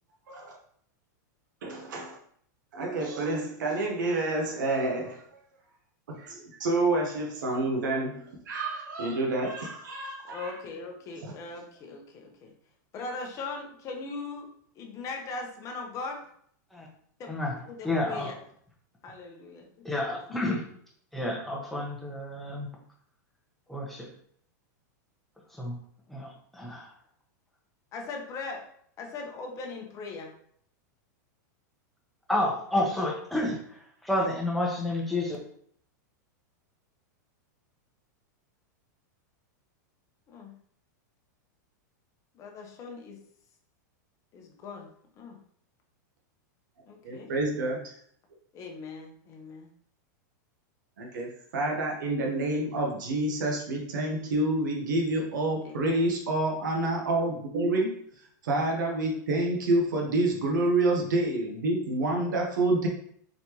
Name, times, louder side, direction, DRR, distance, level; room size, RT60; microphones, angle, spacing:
voice 1, 1.6-2.2 2.7-5.2 6.1-10.5 11.2-11.3 47.0-47.9 51.0-57.9 58.4-62.9, right 2 dB, 80° right, 0 dB, 1.2 m, -28 dB
voice 2, 10.3-12.5 12.9-16.2 17.2-17.3 18.1-18.3 19.0-19.7 27.9-28.7 29.0-30.3 40.3-40.5 42.3-43.2 44.3-45.4 46.9-47.3 48.5-49.7 55.6-56.1 60.2-60.5, left 3 dB, 30° left, 2 dB, 0.9 m, -40 dB
voice 3, 17.3-18.4 19.8-20.7 21.1-22.7 23.7-24.1 25.4-25.8 26.1-27.0 32.3-35.4, left 1 dB, ahead, -2 dB, 0.9 m, -30 dB
4.1 x 3.3 x 3.0 m, 0.63 s
supercardioid pair, 135°, 10 cm